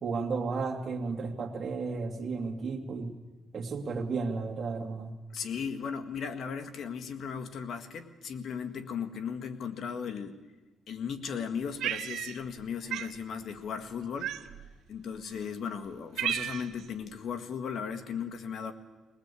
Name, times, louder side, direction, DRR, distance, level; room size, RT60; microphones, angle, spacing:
voice 1, 0.0-3.2 3.5-5.1, right 4 dB, 45° right, 1 dB, 2.3 m, -33 dB
voice 2, 5.3-10.4 10.9-14.4 14.9-18.7, left 6 dB, 65° left, 8 dB, 1.8 m, -36 dB
Cat, 11.8-12.6 12.9-13.1 14.2-14.7 15.4-15.5 15.8-16.9, right 11 dB, 75° right, 0.7 m, -34 dB
20.5 x 20.0 x 8.4 m, 1.2 s
cardioid pair, 90°, 0 cm